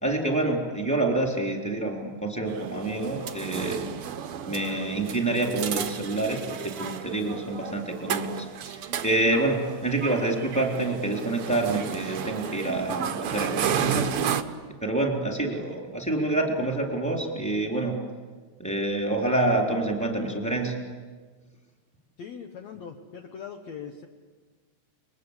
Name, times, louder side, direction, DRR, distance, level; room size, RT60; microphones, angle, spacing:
voice 1, 0.0-3.9 4.4-14.1 14.8-17.9 18.6-20.8, right 2 dB, ahead, 1 dB, 3.4 m, -27 dB
sound 1, 2.5-14.4, right 8 dB, 65° right, 1.4 m, -32 dB
voice 2, 22.2-24.1, left 7 dB, 60° left, 4 dB, 2.2 m, -40 dB
29.5 x 22.5 x 8.3 m, 1.5 s
omnidirectional pair, 4.0 m